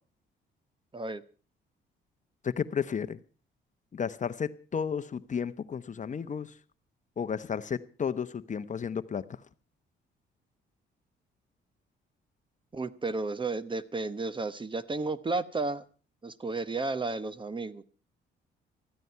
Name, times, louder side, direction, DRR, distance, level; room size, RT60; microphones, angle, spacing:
voice 1, 2.4-3.2 3.9-6.5 7.2-9.4, left 7 dB, 40° left, 0.9 m, -33 dB
voice 2, 12.7-15.8 16.2-17.8, right 3 dB, 25° right, 1.0 m, -33 dB
14.5 x 14.0 x 5.6 m
cardioid pair, 90°, 20 cm